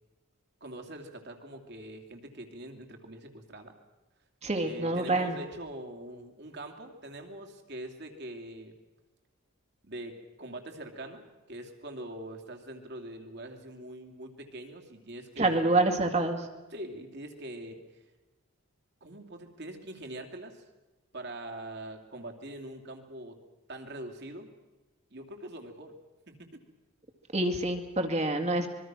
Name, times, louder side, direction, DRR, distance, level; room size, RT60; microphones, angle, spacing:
voice 1, 0.6-3.7 4.5-8.7 9.8-15.9 16.7-17.8 19.0-20.6 21.1-23.4 23.7-24.5 25.1-25.9 26.3-26.6, right 1 dB, 50° right, 4 dB, 2.8 m, -43 dB
voice 2, 4.4-5.4 15.4-16.5 27.3-28.7, right 2 dB, 30° right, 5 dB, 2.1 m, -27 dB
25.5 x 22.0 x 6.1 m, 1.1 s
head